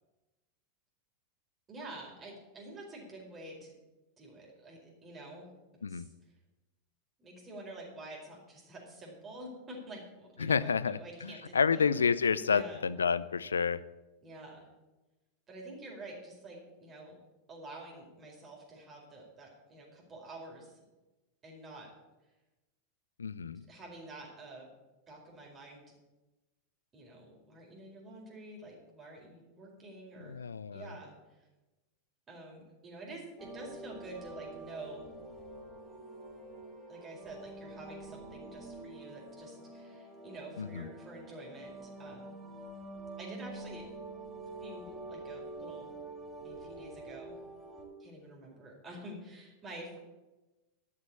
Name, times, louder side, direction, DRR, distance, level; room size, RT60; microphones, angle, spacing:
voice 1, 1.7-3.7 4.2-5.5 5.9-6.1 7.2-11.9 12.4-12.8 14.2-14.7 15.5-17.2 17.5-20.8 21.4-21.9 23.7-24.7 25.1-25.8 26.9-30.4 30.7-31.4 32.3-35.1 36.9-42.3 43.2-43.9 44.6-45.9 46.4-47.4 48.0-50.0, right 2 dB, 25° right, -2 dB, 4.7 m, -48 dB
voice 2, 10.4-13.8 23.2-23.6 30.2-30.9 40.6-40.9, left 6 dB, 80° left, 18 dB, 0.5 m, -30 dB
sound 1, 33.4-47.8, right 2 dB, 5° right, 4.6 m, -47 dB
12.0 x 7.5 x 8.3 m, 1.1 s
figure-of-eight pair, 90°, 0 cm